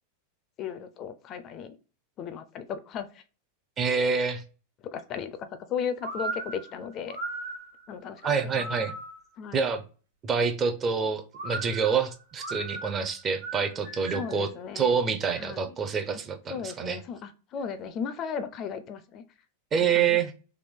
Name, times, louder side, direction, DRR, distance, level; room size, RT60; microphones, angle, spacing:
voice 1, 0.6-1.8 2.2-3.2 4.8-7.2 7.9-8.7 9.4-9.7 14.1-15.0 15.4-15.8 16.5-19.2 19.9-20.2, left 7 dB, 35° left, 0.4 m, -36 dB
voice 2, 3.8-4.4 8.2-8.9 9.5-9.8 10.2-14.5 14.8-17.0 19.7-20.4, right 6 dB, 25° right, 0.5 m, -27 dB
sound 1, 6.0-9.3 11.3-14.4, right 3 dB, 80° right, 1.4 m, -37 dB
3.3 x 2.2 x 3.5 m
supercardioid pair, 140°, 0 cm